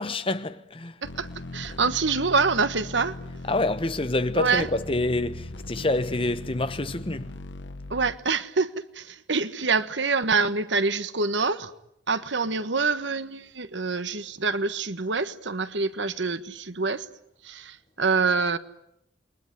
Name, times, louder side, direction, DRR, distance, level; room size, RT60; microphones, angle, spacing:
voice 1, 0.0-1.0 3.5-7.4, left 2 dB, 30° left, 1.1 m, -27 dB
sound 1, 1.0-8.1, left 2 dB, 80° left, 1.5 m, -39 dB
voice 2, 1.0-3.2 4.3-4.7 7.9-11.7 12.1-17.1 17.4-18.6, right 4 dB, 80° right, 1.4 m, -26 dB
28.5 x 22.0 x 9.4 m
head